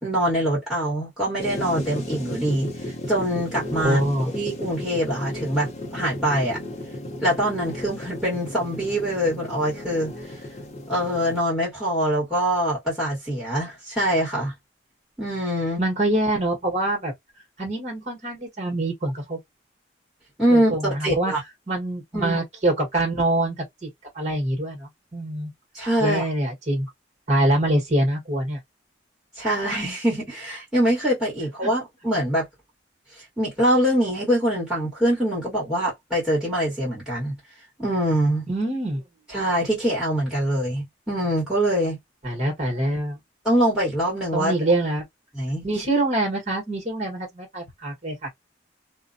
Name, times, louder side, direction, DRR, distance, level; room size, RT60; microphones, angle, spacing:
voice 1, 0.0-4.0 4.3-6.6 7.2-10.1 10.9-14.5 15.2-15.8 20.4-21.4 22.1-22.4 25.7-26.2 29.4-32.5 33.4-37.3 37.8-38.4 39.3-42.0 43.4-44.5 45.3-45.6, equal, 5° right, 1.3 m, -24 dB
sound 1, 1.4-11.4, left 1 dB, 35° left, 0.7 m, -34 dB
voice 2, 3.8-4.3 15.8-17.1 17.6-19.4 20.5-21.3 21.7-23.9 24.1-25.5 26.0-26.9 27.3-28.6 31.6-31.7 38.5-39.0 42.2-43.2 44.3-45.0 45.6-48.3, right 1 dB, 35° right, 1.3 m, -25 dB
2.4 x 2.2 x 2.5 m
head